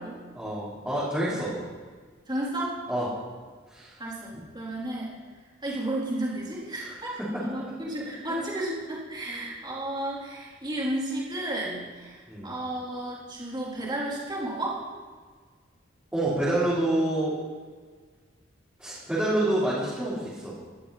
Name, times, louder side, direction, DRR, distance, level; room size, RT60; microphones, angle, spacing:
voice 1, 0.3-1.5 2.9-3.1 3.7-3.9 7.3-7.4 8.4-8.5 9.3-9.4 12.3-12.5 16.1-17.4 18.8-20.5, right 1 dB, 10° right, -11 dB, 4.3 m, -27 dB
voice 2, 2.3-2.8 4.0-5.1 5.6-14.8, right 1 dB, 25° right, -5 dB, 4.0 m, -33 dB
18.5 x 12.5 x 4.3 m, 1.5 s
head